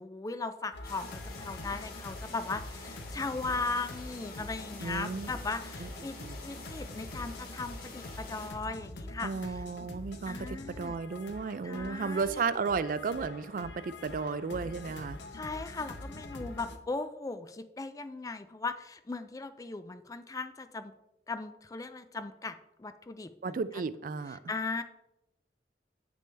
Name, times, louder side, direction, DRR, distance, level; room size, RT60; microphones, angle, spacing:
voice 1, 0.0-6.2 6.4-9.6 10.3-11.0 11.6-12.4 15.3-20.9 21.3-23.6 24.5-24.8, left 3 dB, 20° left, 11 dB, 0.4 m, -38 dB
sound 1, 0.7-16.8, left 1 dB, 80° left, 0.8 m, -45 dB
sound 2, 0.8-8.5, left 3 dB, 55° left, 1.6 m, -48 dB
voice 2, 4.8-5.3 5.8-5.9 6.2-6.3 9.2-15.2 23.4-24.4, right 4 dB, 50° right, 14 dB, 0.4 m, -34 dB
8.4 x 6.1 x 3.4 m, 0.91 s
head